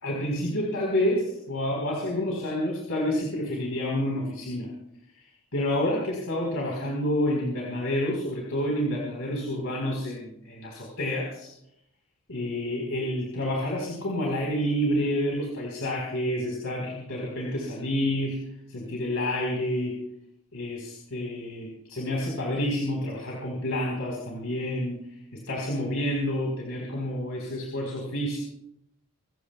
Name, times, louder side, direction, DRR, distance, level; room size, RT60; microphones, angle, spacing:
voice 1, 0.0-4.7 5.5-11.5 12.3-18.4 18.7-20.0 20.5-25.0 25.3-28.4, left 1 dB, 90° left, -2 dB, 4.2 m, -29 dB
27.5 x 15.5 x 2.3 m, 0.77 s
head